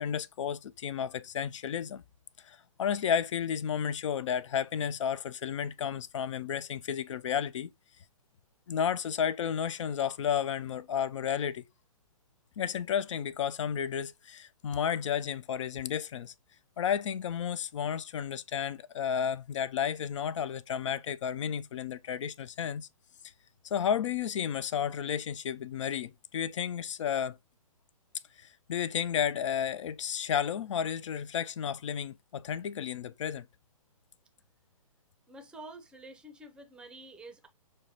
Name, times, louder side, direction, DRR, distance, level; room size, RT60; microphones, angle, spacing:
voice 1, 0.0-2.0 2.4-7.7 8.7-11.6 12.6-16.3 16.8-22.9 23.6-27.4 28.4-33.5, left 8 dB, 55° left, 0.4 m, -32 dB
voice 2, 35.3-37.5, right 2 dB, 5° right, 0.5 m, -48 dB
6.3 x 2.1 x 2.8 m
figure-of-eight pair, 130°, 18 cm